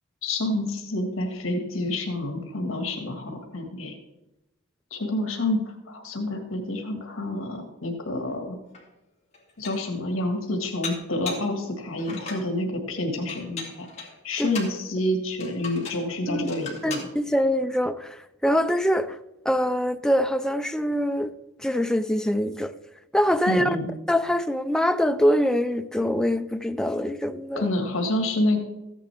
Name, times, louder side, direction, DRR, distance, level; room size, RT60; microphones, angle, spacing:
voice 1, 0.2-3.9 4.9-5.6 5.9-8.6 9.6-13.9 14.2-17.1 23.5-23.9 27.6-28.6, left 1 dB, 70° left, 1.8 m, -28 dB
Dishes pots and pans, 8.7-8.8 9.3-9.9 10.8-11.5 12.0-12.5 13.3-14.8 15.4-16.1 16.4-17.1, left 4 dB, 30° left, 2.5 m, -37 dB
voice 2, 16.8-19.2 19.4-21.3 21.6-22.7 23.1-23.8 24.1-27.7, equal, 5° left, 0.4 m, -24 dB
14.5 x 9.8 x 3.5 m
head